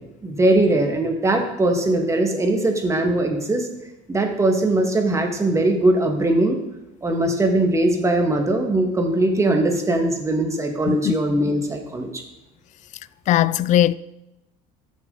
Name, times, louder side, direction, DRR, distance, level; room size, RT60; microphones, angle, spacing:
voice 1, 0.2-3.7 4.1-6.6 7.0-12.2, right 1 dB, 15° right, 2.1 m, -20 dB
voice 2, 13.3-13.9, left 13 dB, 45° left, 0.4 m, -18 dB
14.0 x 7.2 x 4.1 m
supercardioid pair, 95°, 17 cm